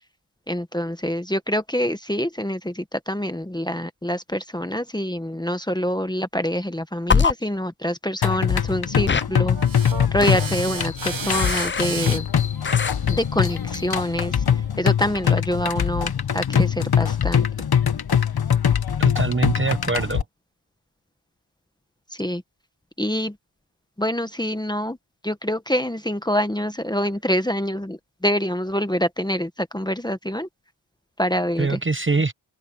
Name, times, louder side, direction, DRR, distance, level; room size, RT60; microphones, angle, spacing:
voice 1, 0.5-9.6 10.1-12.3 13.1-14.4 14.8-17.5 22.1-22.4 23.0-23.4 24.0-25.0 25.2-30.5 31.2-31.8, equal, 10° left, 1.1 m, -26 dB
sound 1, 7.1-7.3 9.1-9.2 10.2-10.5 11.3-11.8 12.6-12.9, left 5 dB, 25° left, 0.5 m, -21 dB
sound 2, 8.2-20.2, left 8 dB, 45° left, 1.1 m, -22 dB
sound 3, 9.5-14.7, right 6 dB, 65° right, 3.2 m, -35 dB
voice 2, 19.0-20.2 31.6-32.3, right 3 dB, 25° right, 1.0 m, -23 dB
open air
wide cardioid pair, 105°, 50 cm